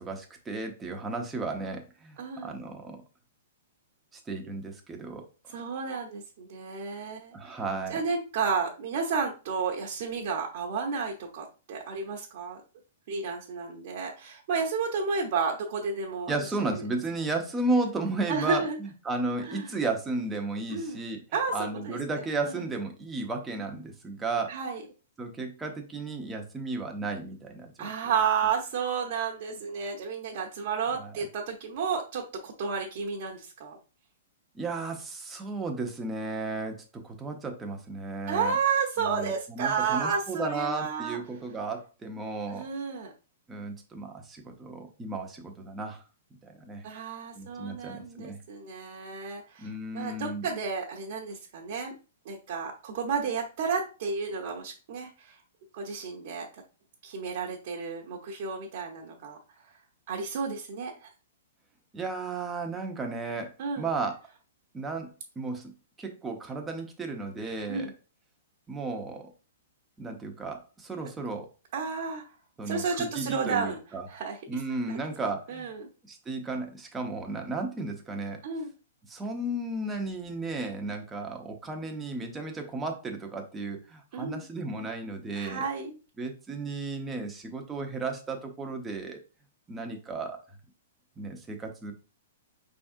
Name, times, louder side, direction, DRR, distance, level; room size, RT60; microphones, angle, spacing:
voice 1, 0.0-3.0 4.1-5.3 7.3-8.0 16.3-21.2 21.5-24.6 25.2-27.9 31.0-31.1 34.5-38.6 39.0-42.7 43.5-46.0 46.4-46.9 47.4-48.4 49.6-50.5 61.9-64.2 64.7-65.1 65.4-65.7 66.0-67.9 68.7-69.3 70.0-71.5 72.6-74.1 74.5-75.7 76.1-78.4 79.1-85.6 86.2-89.2 89.7-90.4 91.2-91.9, right 3 dB, 10° right, 3 dB, 0.6 m, -34 dB
voice 2, 2.2-2.6 5.5-7.5 7.9-12.6 13.1-16.3 16.7-16.8 18.3-18.8 19.4-19.7 20.7-21.0 21.3-22.0 22.5-22.6 24.5-24.8 27.8-33.8 38.3-41.2 42.5-43.1 46.8-49.7 49.9-51.9 52.3-55.3 55.7-56.6 57.0-59.4 60.1-61.1 63.6-63.9 67.7-67.9 71.7-72.2 72.7-73.8 74.1-74.6 74.9-75.0 75.5-75.9 78.4-78.7 84.1-84.4 85.4-85.9, right 5 dB, 45° right, -1 dB, 0.8 m, -32 dB
5.2 x 3.6 x 2.6 m, 0.32 s
hypercardioid pair, 175°, 0 cm